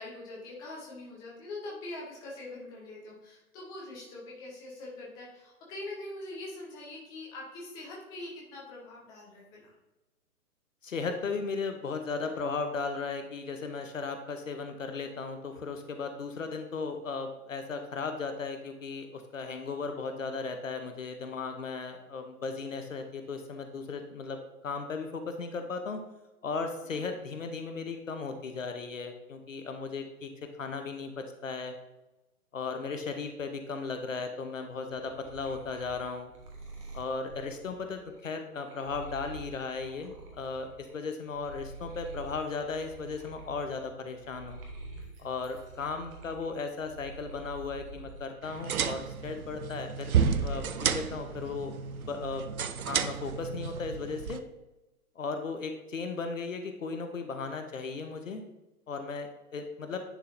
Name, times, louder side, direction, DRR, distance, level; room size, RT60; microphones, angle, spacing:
voice 1, 0.0-9.7 26.8-27.0, left 2 dB, 10° left, -4 dB, 0.7 m, -43 dB
voice 2, 10.8-26.0 26.4-30.3 30.6-31.8 32.5-36.3 36.9-44.6 45.2-51.7 52.1-52.4 52.9-54.4 55.2-58.4 58.9-60.0, left 4 dB, 55° left, 6 dB, 0.8 m, -36 dB
sound 1, 34.7-40.9 41.3-48.3 48.7-49.3, right 2 dB, 20° right, 1.0 m, -47 dB
sound 2, 48.4-54.4, right 7 dB, 70° right, 0.6 m, -31 dB
10.0 x 3.8 x 2.6 m, 1.0 s
figure-of-eight pair, 125°, 45 cm